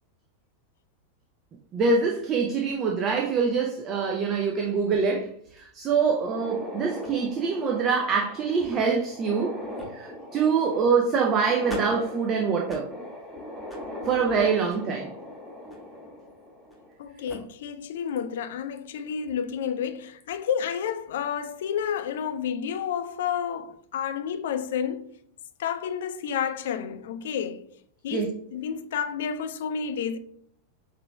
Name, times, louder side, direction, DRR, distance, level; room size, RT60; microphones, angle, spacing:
voice 1, 1.7-9.6 9.9-12.9 14.0-15.1 28.1-28.3, right 5 dB, 30° right, 0.5 m, -25 dB
sound 1, 6.1-16.9 17.3-17.4 18.2-18.3 18.8-18.9 20.2-20.5, left 1 dB, ahead, 1.0 m, -40 dB
voice 2, 17.0-25.1 25.6-27.7 28.0-30.2, left 8 dB, 55° left, 0.3 m, -30 dB
5.8 x 3.2 x 2.2 m
figure-of-eight pair, 90°, 0 cm